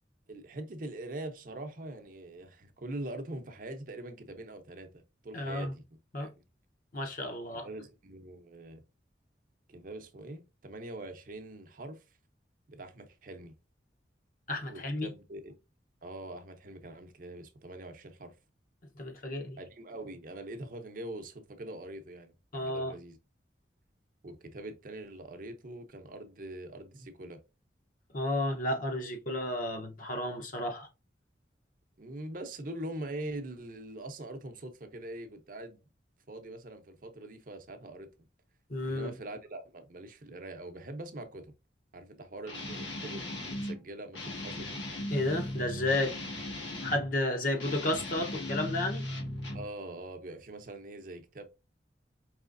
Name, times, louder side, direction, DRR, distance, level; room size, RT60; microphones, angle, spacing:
voice 1, 0.3-5.8 6.2-6.3 7.6-8.8 9.7-12.0 12.7-13.5 14.7-15.5 16.0-18.3 19.6-23.2 24.2-27.4 32.0-35.9 36.3-38.1 38.8-41.5 41.9-44.8 49.5-51.5, right 1 dB, 50° right, 0.7 m, -43 dB
voice 2, 5.3-5.7 6.1-6.3 6.9-7.7 14.5-15.1 18.9-19.6 22.5-22.9 28.1-30.9 38.7-39.1 45.1-46.2 46.8-49.0, left 1 dB, 45° left, 0.8 m, -32 dB
Guitar, 42.4-43.8 44.1-47.1 47.5-49.7, left 1 dB, 85° left, 1.6 m, -37 dB
4.8 x 3.0 x 2.5 m
head